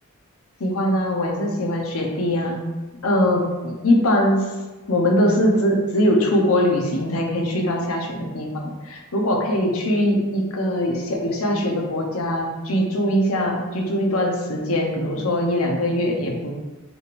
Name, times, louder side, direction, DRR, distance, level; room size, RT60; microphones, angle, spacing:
voice 1, 0.6-2.6 3.0-4.5 4.9-16.5, left 1 dB, 80° left, 1 dB, 0.8 m, -21 dB
6.1 x 3.2 x 2.5 m, 1.2 s
head